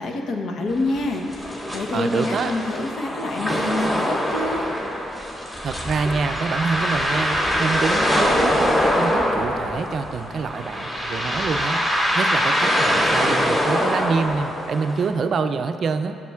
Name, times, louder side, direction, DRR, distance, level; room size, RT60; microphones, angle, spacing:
voice 1, 0.0-4.7, left 2 dB, 70° left, 2 dB, 0.9 m, -27 dB
sound 1, 0.7-15.1, equal, 20° left, 2.1 m, -23 dB
voice 2, 1.9-2.5 5.6-16.2, right 5 dB, 55° right, 8 dB, 0.4 m, -26 dB
13.0 x 7.3 x 2.4 m, 2.6 s
cardioid pair, 90°, 0 cm